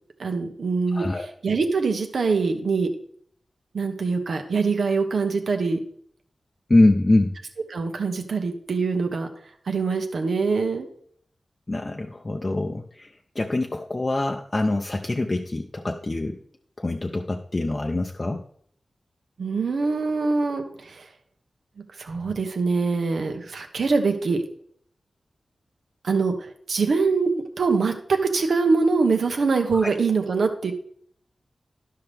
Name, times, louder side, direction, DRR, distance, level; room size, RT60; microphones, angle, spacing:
voice 1, 0.2-2.9 3.7-5.8 7.7-9.3 9.7-10.9 19.4-21.1 22.0-24.4 26.0-27.3 27.6-30.7, right 4 dB, 85° right, 5 dB, 1.1 m, -24 dB
voice 2, 0.9-1.3 6.7-7.4 11.7-13.1 13.4-16.4 16.8-18.4 29.7-29.9, left 2 dB, 30° left, 3 dB, 0.5 m, -24 dB
12.5 x 5.8 x 3.4 m, 0.63 s
wide cardioid pair, 120°, 0 cm